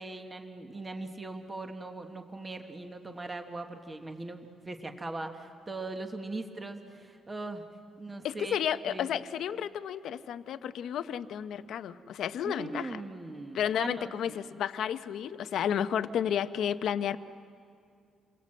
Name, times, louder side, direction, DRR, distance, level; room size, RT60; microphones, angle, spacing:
voice 1, 0.0-7.6 8.0-8.6 8.8-9.1 12.4-14.4, right 2 dB, 15° right, 5 dB, 1.3 m, -40 dB
voice 2, 8.2-13.0 13.5-17.2, left 9 dB, 60° left, 12 dB, 0.7 m, -32 dB
28.5 x 22.5 x 7.6 m, 2.4 s
cardioid pair, 175°, 0 cm